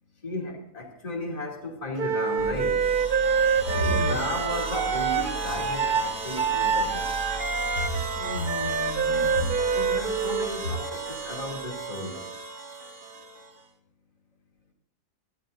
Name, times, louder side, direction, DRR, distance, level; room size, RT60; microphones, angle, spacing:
voice 1, 0.2-2.9 3.6-7.1 9.7-12.3, left 2 dB, 20° left, -1 dB, 2.8 m, -35 dB
Wind instrument woodwind instrument, 2.0-10.5, right 5 dB, 40° right, 0.8 m, -26 dB
sound 1, 2.4-11.8, right 3 dB, ahead, 7.4 m, -42 dB
sound 2, 2.4-13.6, right 3 dB, 70° right, 2.3 m, -36 dB
voice 2, 3.7-4.2 7.9-9.5, right 1 dB, 75° left, -1 dB, 4.9 m, -30 dB
23.0 x 15.5 x 2.6 m, 0.65 s
omnidirectional pair, 1.7 m